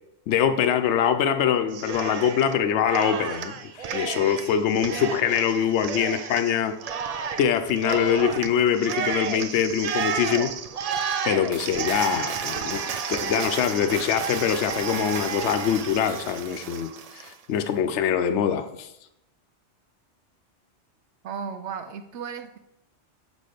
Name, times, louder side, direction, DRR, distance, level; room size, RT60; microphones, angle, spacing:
voice 1, 0.3-6.8 7.4-10.5 11.2-18.9, left 8 dB, 80° left, 8 dB, 0.9 m, -24 dB
Cheering, 1.7-2.6 2.9-17.3, right 6 dB, 65° right, 0.4 m, -31 dB
voice 2, 21.2-22.6, right 6 dB, 80° right, 7 dB, 0.9 m, -35 dB
7.0 x 4.2 x 5.0 m, 0.82 s
omnidirectional pair, 1.2 m